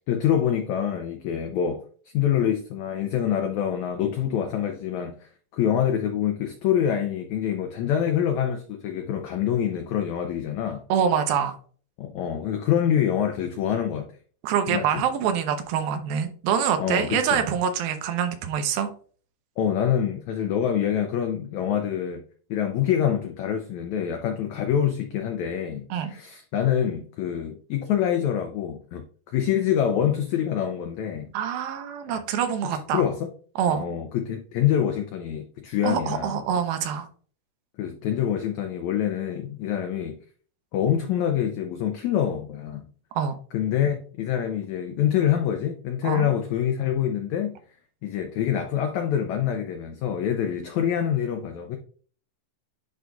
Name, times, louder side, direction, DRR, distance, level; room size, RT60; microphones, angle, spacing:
voice 1, 0.1-1.8 2.1-10.8 12.0-14.1 14.7-15.0 16.8-17.4 19.6-22.2 22.5-31.3 32.7-33.3 33.7-36.4 37.8-40.2 40.7-42.9 43.5-47.6 48.0-51.8, left 9 dB, 90° left, 1.6 m, -26 dB
voice 2, 10.9-11.6 14.4-18.9 25.9-26.2 31.3-33.0 33.6-33.8 35.8-37.1 43.2-43.3 46.0-46.3, right 8 dB, 85° right, 2.7 m, -25 dB
10.5 x 3.9 x 2.3 m
omnidirectional pair, 4.2 m